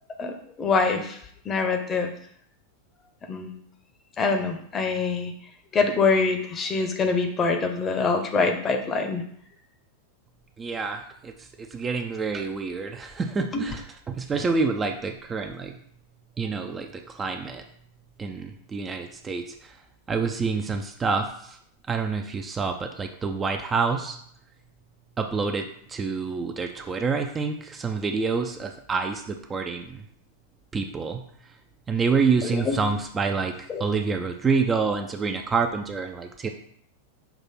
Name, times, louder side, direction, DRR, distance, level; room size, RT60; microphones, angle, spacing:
voice 1, 0.2-1.2 1.4-2.1 3.3-3.5 4.2-5.3 5.7-9.2 13.5-13.6 32.4-32.8 33.7-33.8, left 4 dB, 25° left, 5 dB, 0.8 m, -24 dB
voice 2, 10.6-15.8 16.4-17.6 18.2-19.8 20.1-21.6 21.9-24.2 25.2-30.1 30.7-31.2 31.9-36.5, right 4 dB, 20° right, 5 dB, 0.5 m, -27 dB
6.0 x 2.9 x 5.5 m, 0.65 s
figure-of-eight pair, 90°, 0 cm